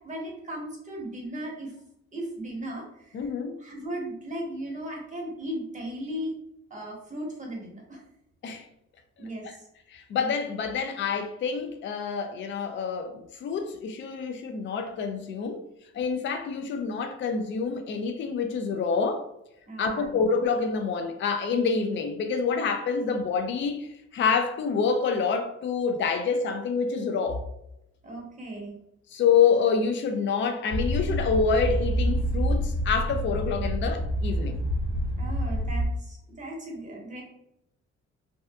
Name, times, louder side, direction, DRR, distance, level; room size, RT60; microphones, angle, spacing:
voice 1, 0.0-1.7 2.1-3.3 3.6-6.3 6.7-8.0 9.2-9.6 19.7-20.2 28.0-28.8 35.2-37.2, right 1 dB, 25° right, 0.9 m, -36 dB
voice 2, 3.1-3.6 8.4-8.6 9.4-9.5 9.9-15.6 15.9-19.3 19.8-27.4 29.1-34.6, left 5 dB, 40° left, 0.4 m, -27 dB
sound 1, 30.7-35.9, equal, 85° left, 0.7 m, -27 dB
2.7 x 2.3 x 2.3 m
cardioid pair, 90°, 30 cm